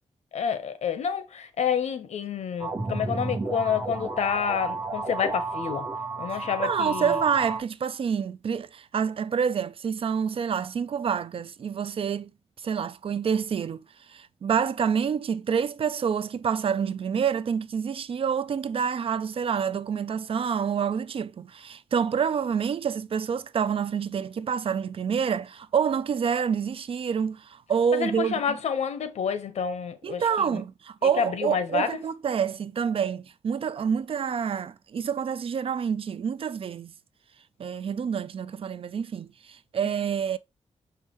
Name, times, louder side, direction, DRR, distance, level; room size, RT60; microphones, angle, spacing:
voice 1, 0.3-5.8 6.2-7.2 27.9-30.6 31.0-31.9, left 7 dB, 85° left, 1.0 m, -29 dB
sound 1, 2.6-7.6, right 3 dB, 35° right, 1.6 m, -32 dB
voice 2, 6.3-12.3 12.6-13.8 14.1-28.6 30.0-36.9 37.6-40.4, right 7 dB, 55° right, 0.5 m, -27 dB
6.4 x 4.9 x 3.1 m
wide cardioid pair, 130°, 11 cm